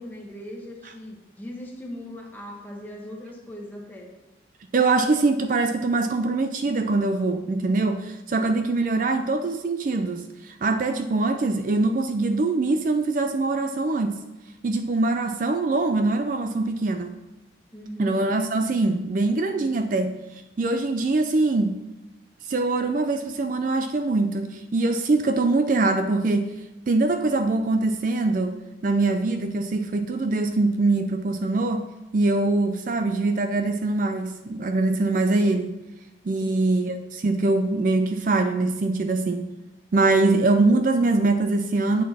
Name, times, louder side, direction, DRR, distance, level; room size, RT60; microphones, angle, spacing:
voice 1, 0.0-4.1 17.7-18.2 36.4-36.7, left 1 dB, 10° left, -1 dB, 1.1 m, -39 dB
voice 2, 4.7-14.2 14.6-17.2 18.0-21.8 22.4-26.5 26.9-31.8 32.1-35.8 36.3-39.5 39.9-42.0, right 3 dB, 45° right, 8 dB, 0.4 m, -23 dB
8.4 x 6.0 x 4.2 m, 1.0 s
head